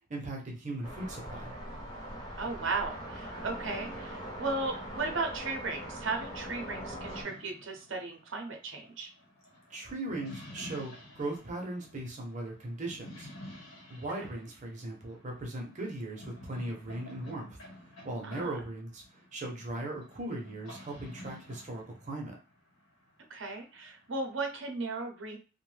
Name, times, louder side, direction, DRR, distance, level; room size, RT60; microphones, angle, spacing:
voice 1, 0.1-1.5 9.7-13.3 13.9-17.6 18.0-22.4, right 2 dB, 35° right, 1 dB, 0.7 m, -38 dB
sound 1, 0.8-7.2, equal, 20° left, 0.7 m, -41 dB
voice 2, 2.4-9.1 18.2-18.5 23.3-25.4, right 3 dB, 70° right, 4 dB, 0.7 m, -36 dB
sound 2, 7.0-24.7, left 1 dB, 90° left, 1.0 m, -51 dB
2.6 x 2.2 x 3.2 m, 0.35 s
head